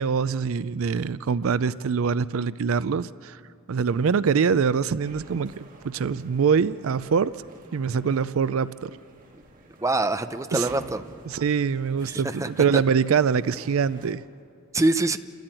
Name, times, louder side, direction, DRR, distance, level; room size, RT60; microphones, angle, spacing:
voice 1, 0.0-3.4 3.7-7.3 7.7-8.9 10.5-10.7 11.3-14.2, right 6 dB, 70° right, 17 dB, 0.4 m, -24 dB
sound 1, 5.0-14.1, right 2 dB, 40° right, 1.8 m, -49 dB
voice 2, 9.8-11.0 12.1-12.7 14.7-15.2, right 2 dB, 15° right, 9 dB, 0.6 m, -25 dB
29.0 x 13.0 x 8.9 m, 2.4 s
head